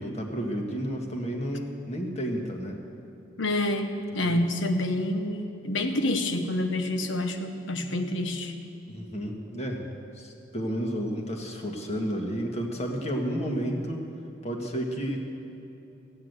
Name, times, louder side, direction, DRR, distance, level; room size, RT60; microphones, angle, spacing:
voice 1, 0.0-2.8 4.1-4.4 8.9-9.8 10.1-14.0 14.4-15.2, equal, 35° left, 2 dB, 1.6 m, -31 dB
voice 2, 3.4-8.5, left 1 dB, 80° left, 6 dB, 1.1 m, -28 dB
15.0 x 9.8 x 8.0 m, 2.8 s
head